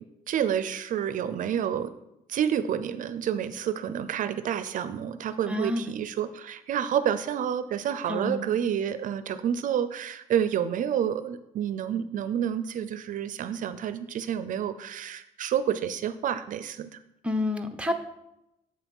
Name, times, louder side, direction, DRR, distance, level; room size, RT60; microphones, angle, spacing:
voice 1, 0.3-1.9 2.3-17.0, right 9 dB, 65° right, 12 dB, 0.5 m, -29 dB
voice 2, 5.5-5.9 8.1-8.4 17.2-17.9, left 2 dB, 10° right, 5 dB, 0.8 m, -28 dB
7.5 x 5.9 x 5.4 m, 0.87 s
cardioid pair, 115°, 14 cm